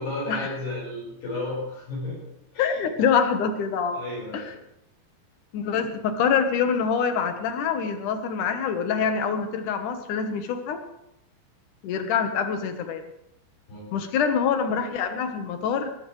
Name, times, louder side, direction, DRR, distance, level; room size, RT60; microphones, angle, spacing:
voice 1, 0.0-2.2 2.5-2.8 3.9-4.5 13.7-13.9, left 2 dB, 85° left, -7 dB, 7.4 m, -33 dB
voice 2, 2.6-4.0 4.3-4.5 5.5-10.8 11.8-13.0 13.9-15.9, left 6 dB, 65° left, 7 dB, 2.4 m, -25 dB
20.0 x 16.0 x 3.2 m, 0.85 s
omnidirectional pair, 4.5 m